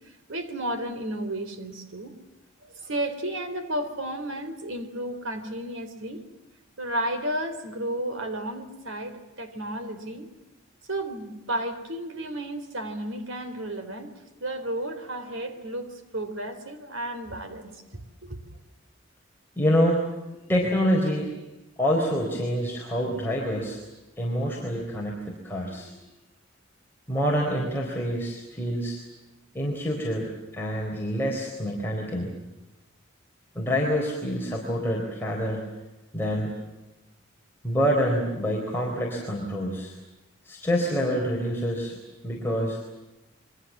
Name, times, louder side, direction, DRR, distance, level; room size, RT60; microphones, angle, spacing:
voice 1, 0.3-2.1 2.6-6.2 6.8-10.3 10.9-14.1 14.4-18.5, right 1 dB, 75° right, 8 dB, 3.6 m, -33 dB
voice 2, 19.6-20.0 20.5-21.3 21.8-23.8 24.2-25.9 27.1-29.0 29.5-32.3 33.5-35.6 36.1-36.5 37.6-39.9 40.4-42.0 42.2-42.8, equal, 10° left, -3 dB, 4.1 m, -26 dB
28.5 x 24.0 x 7.3 m, 1.0 s
head